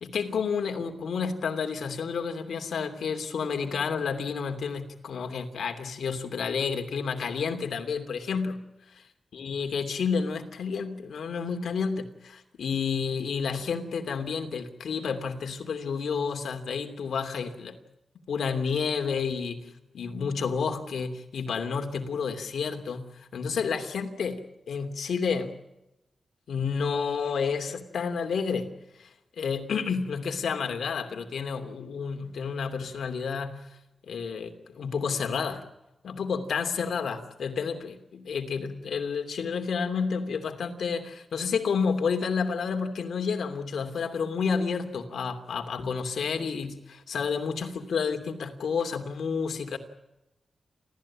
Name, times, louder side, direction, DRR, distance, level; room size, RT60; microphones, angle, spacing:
voice 1, 0.0-8.6 9.3-17.8 18.3-25.5 26.5-29.1 29.4-33.7 34.1-35.6 36.0-49.8, left 5 dB, 90° left, 6 dB, 2.8 m, -30 dB
29.5 x 14.0 x 8.7 m, 0.94 s
wide cardioid pair, 105°, 0 cm